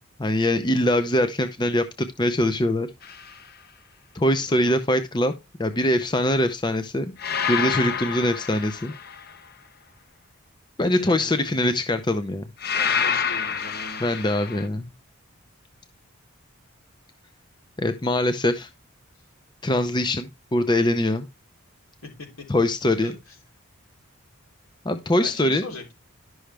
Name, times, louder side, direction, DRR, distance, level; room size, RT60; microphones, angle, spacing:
voice 1, 0.2-2.9 4.1-5.3 5.6-7.1 7.5-8.9 10.8-12.4 14.0-14.9 17.8-18.7 19.6-21.3 22.5-23.1 24.8-25.6, left 1 dB, 20° left, 9 dB, 0.6 m, -23 dB
sound 1, 3.0-3.4 7.2-9.4 12.6-14.7, left 7 dB, 45° left, 0.9 m, -28 dB
voice 2, 4.5-4.8 10.9-11.9 12.7-14.0 22.0-22.3 22.8-23.4 25.2-25.9, left 2 dB, 75° left, 2 dB, 3.5 m, -40 dB
11.5 x 6.3 x 3.3 m, 0.24 s
head